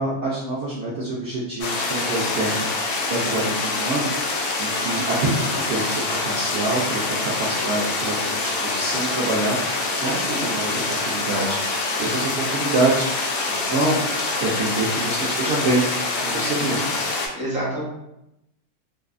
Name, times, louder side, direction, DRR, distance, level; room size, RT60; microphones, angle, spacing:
voice 1, 0.0-2.7 3.1-13.1 13.5-14.0 14.4-15.8 16.2-16.9, right 2 dB, 70° right, -6 dB, 0.7 m, -26 dB
sound 1, 1.6-17.3, left 3 dB, 70° left, 0.8 m, -25 dB
voice 2, 9.9-10.5 16.3-16.9 17.3-17.8, right 1 dB, 10° right, -8 dB, 0.5 m, -31 dB
2.6 x 2.3 x 2.4 m, 0.86 s
omnidirectional pair, 1.6 m